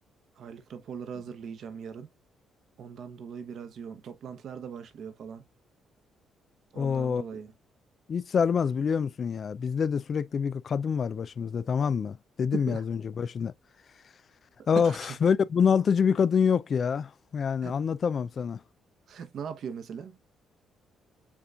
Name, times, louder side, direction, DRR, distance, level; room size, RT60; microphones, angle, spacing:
voice 1, 0.4-2.1 2.8-5.4 6.7-7.5 12.5-12.8 14.7-15.2 17.6-17.8 19.1-20.2, right 7 dB, 65° right, 1.0 m, -39 dB
voice 2, 6.8-7.2 8.1-13.5 14.7-18.6, left 6 dB, 50° left, 0.4 m, -26 dB
7.2 x 2.6 x 2.4 m
cardioid pair, 90°, 0 cm